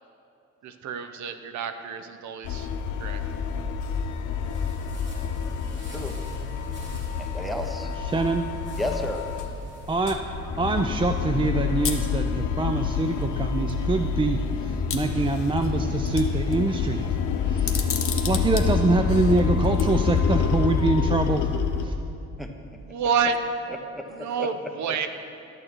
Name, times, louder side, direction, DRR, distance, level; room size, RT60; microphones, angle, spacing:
voice 1, 0.6-2.7 3.0-3.2 22.8-23.3 24.1-25.1, right 6 dB, 70° right, 8 dB, 0.7 m, -28 dB
sound 1, 2.4-9.5 9.9-21.9, left 6 dB, 75° left, 0.7 m, -27 dB
sound 2, 4.4-12.1, equal, 40° right, 2.6 m, -42 dB
voice 2, 7.2-7.9 8.8-9.2 22.4-22.5 24.4-24.5 24.9-25.1, left 1 dB, ahead, 4 dB, 0.9 m, -31 dB
voice 3, 8.0-8.5 9.9-10.2 10.6-17.2 17.5-17.9 18.3-21.5 21.8-21.9, right 3 dB, 20° right, 6 dB, 0.3 m, -25 dB
sound 3, 11.8-12.1 13.2-13.3 13.7-13.8 14.9-15.7 16.0-16.5 17.6-18.7 19.6-19.8, left 7 dB, 45° left, 1.0 m, -31 dB
12.0 x 6.4 x 4.5 m, 2.7 s
cardioid pair, 90°, 30 cm